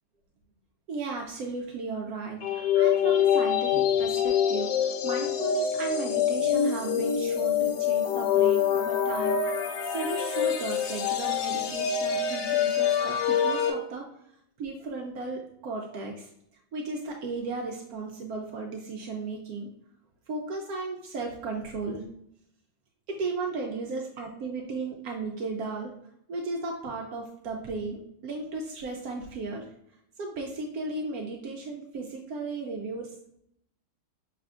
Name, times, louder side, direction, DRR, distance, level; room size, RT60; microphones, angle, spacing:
voice 1, 0.9-14.1 14.6-16.3 16.7-19.7 20.3-22.0 23.1-25.9 26.3-29.7 30.2-33.1, right 3 dB, 90° right, 1 dB, 0.8 m, -35 dB
sound 1, 2.4-13.7, left 8 dB, 70° left, 1.2 m, -25 dB
5.7 x 3.4 x 2.4 m, 0.73 s
omnidirectional pair, 2.3 m